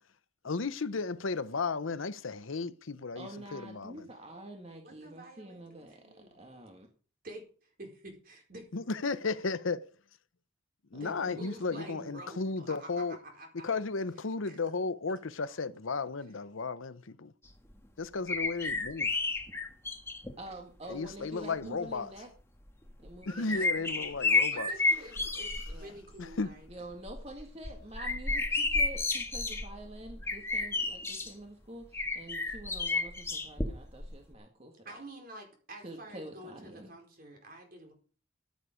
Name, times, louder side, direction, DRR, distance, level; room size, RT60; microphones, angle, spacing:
voice 1, 0.4-3.9 8.7-9.9 10.9-13.2 13.6-17.3 18.0-19.1 20.9-22.1 23.3-24.7 26.2-26.5, left 4 dB, 90° left, 0.8 m, -34 dB
voice 2, 3.2-6.0 6.3-6.9 10.9-11.4 11.7-12.1 20.4-22.3 23.0-24.2 25.7-26.0 26.7-35.0 35.8-36.9, right 1 dB, 30° right, 1.8 m, -47 dB
voice 3, 4.8-6.4 7.2-8.7 10.9-13.8 14.4-14.6 24.4-26.7 34.8-37.9, right 1 dB, 45° right, 4.6 m, -49 dB
sound 1, 18.3-20.3 21.2-21.3 22.9-25.8 26.1-26.5 26.9-31.3 31.9-34.1 34.3-34.4, left 3 dB, 15° left, 1.5 m, -31 dB
14.5 x 8.4 x 5.1 m
head